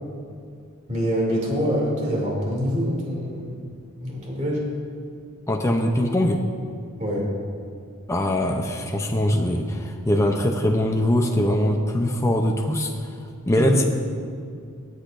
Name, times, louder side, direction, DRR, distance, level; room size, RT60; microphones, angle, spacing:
voice 1, 0.9-3.6 4.0-4.7 7.0-7.3 13.5-13.9, equal, 35° right, -3 dB, 2.8 m, -25 dB
voice 2, 5.5-6.4 8.1-13.1 13.5-13.9, left 1 dB, 15° left, 2 dB, 0.6 m, -22 dB
22.5 x 8.2 x 2.6 m, 2.3 s
head